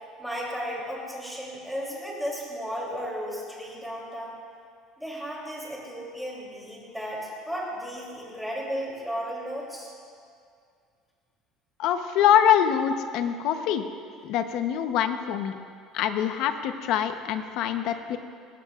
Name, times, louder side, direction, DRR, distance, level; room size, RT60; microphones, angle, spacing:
voice 1, 0.2-4.4 5.0-9.9, equal, ahead, -4 dB, 3.1 m, -34 dB
voice 2, 11.8-13.9 14.2-15.5 15.9-18.2, left 9 dB, 60° left, 8 dB, 0.9 m, -24 dB
19.5 x 17.5 x 2.5 m, 2.2 s
cardioid pair, 160°, 0 cm